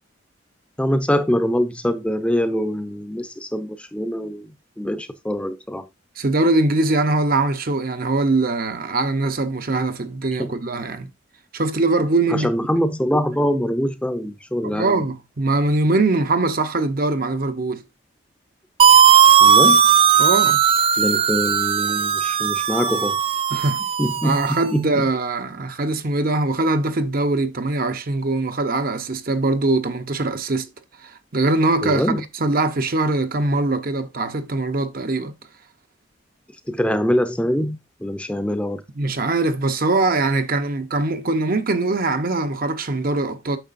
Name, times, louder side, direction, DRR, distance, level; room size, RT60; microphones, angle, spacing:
voice 1, 0.8-4.5 4.8-5.9 10.4-10.5 12.3-15.0 19.4-19.8 21.0-23.2 24.0-25.0 31.8-32.2 36.7-38.8, equal, 5° left, 0.7 m, -23 dB
voice 2, 6.2-11.1 11.5-12.5 14.6-17.8 20.2-20.6 23.5-23.8 24.2-30.7 31.0-35.3 39.0-43.6, right 2 dB, 45° right, 0.8 m, -22 dB
sound 1, 18.8-24.6, right 7 dB, 30° right, 0.3 m, -16 dB
9.0 x 6.5 x 2.6 m
head